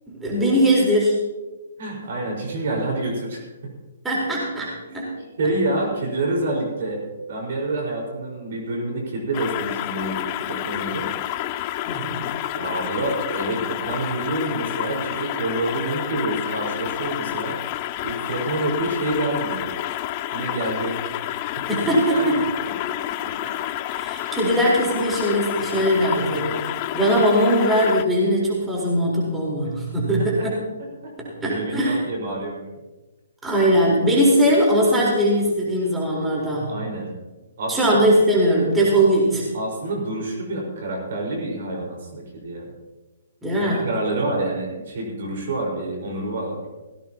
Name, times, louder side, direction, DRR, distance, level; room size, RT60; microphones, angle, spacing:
voice 1, 0.2-1.1 4.0-5.1 11.9-12.2 21.7-22.4 23.2-23.5 23.9-30.3 31.4-32.0 33.4-36.7 37.7-39.4 43.4-43.9, equal, 10° right, -5 dB, 4.2 m, -20 dB
voice 2, 1.8-3.7 4.9-5.0 5.4-11.1 12.5-17.6 18.0-19.6 20.3-21.0 21.2-21.4 22.1-23.0 30.2-30.5 31.0-31.1 31.4-32.6 36.7-37.1 37.6-38.0 39.0-39.1 39.5-42.7 43.6-46.7, right 2 dB, 55° right, -1 dB, 5.0 m, -28 dB
sound 1, 9.3-28.0, left 14 dB, 35° left, 0.5 m, -29 dB
17.0 x 17.0 x 3.0 m, 1.2 s
figure-of-eight pair, 130°, 0 cm